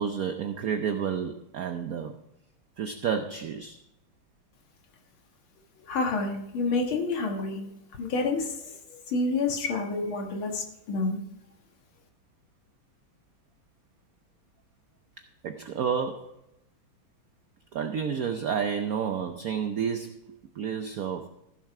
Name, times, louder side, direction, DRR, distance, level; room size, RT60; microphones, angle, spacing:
voice 1, 0.0-2.2 2.8-3.8 15.4-16.3 17.7-21.3, right 7 dB, 65° right, 7 dB, 0.9 m, -30 dB
voice 2, 5.8-7.6 7.9-8.7 9.1-11.2, left 3 dB, 85° left, 3 dB, 2.4 m, -28 dB
15.0 x 7.3 x 4.8 m, 0.83 s
omnidirectional pair, 2.2 m